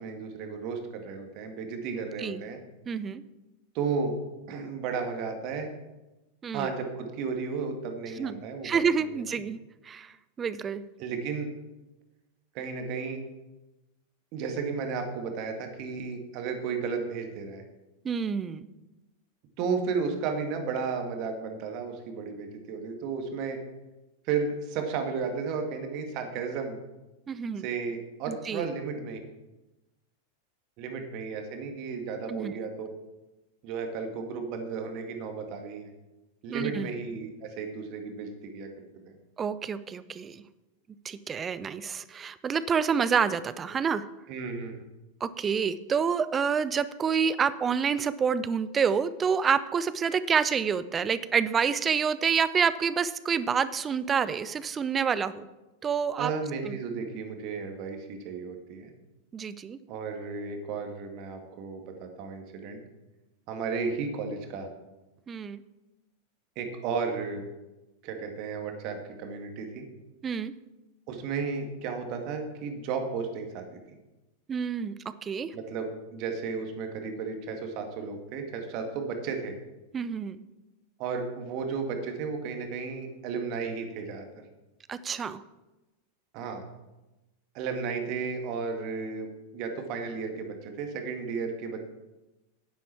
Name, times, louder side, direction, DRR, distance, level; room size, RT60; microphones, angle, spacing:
voice 1, 0.0-2.6 3.7-4.2 4.5-5.7 6.5-9.1 11.0-11.5 12.5-13.2 14.3-17.6 19.6-23.6 24.3-26.8 27.6-29.2 30.8-32.9 33.6-35.9 36.4-38.7 39.1-39.2 44.3-44.8 56.2-58.9 59.9-62.8 63.5-64.7 66.6-67.4 68.0-69.8 71.1-73.7 75.5-79.6 81.0-84.3 86.3-86.6 87.5-91.8, right 5 dB, 40° right, 4 dB, 1.9 m, -33 dB
voice 2, 1.9-2.4 2.9-3.2 6.4-6.7 8.2-9.6 9.8-10.8 18.0-18.7 27.3-27.6 28.3-28.7 32.3-32.5 36.5-36.9 39.4-40.4 41.0-44.1 45.2-55.5 55.8-56.3 56.6-56.8 59.3-59.8 65.3-65.6 70.2-70.5 74.5-74.9 75.2-75.5 79.9-80.4 84.9-85.4, right 6 dB, 20° right, 16 dB, 0.6 m, -28 dB
10.5 x 10.5 x 4.4 m, 1.0 s
figure-of-eight pair, 90°, 0 cm